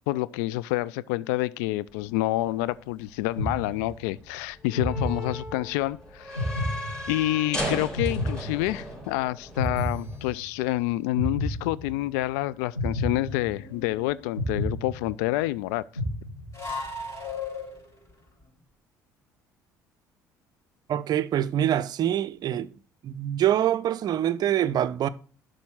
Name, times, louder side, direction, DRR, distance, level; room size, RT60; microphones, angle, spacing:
voice 1, 0.1-6.4 7.1-15.8, left 17 dB, 65° left, 0.4 m, -28 dB
sound 1, 1.9-10.2, equal, 10° left, 3.8 m, -37 dB
sound 2, 3.4-4.2 4.7-5.8 6.4-7.5 8.0-9.1 9.6-10.7 11.1-12.2 12.7-13.9 14.4-15.5 16.0-16.8, left 1 dB, 90° left, 1.9 m, -31 dB
sound 3, 13.3-14.3 16.5-18.0, left 4 dB, 30° left, 5.0 m, -36 dB
voice 2, 20.9-22.7 23.0-25.1, right 11 dB, 45° right, 0.5 m, -25 dB
11.5 x 3.8 x 6.2 m
figure-of-eight pair, 55°, 10 cm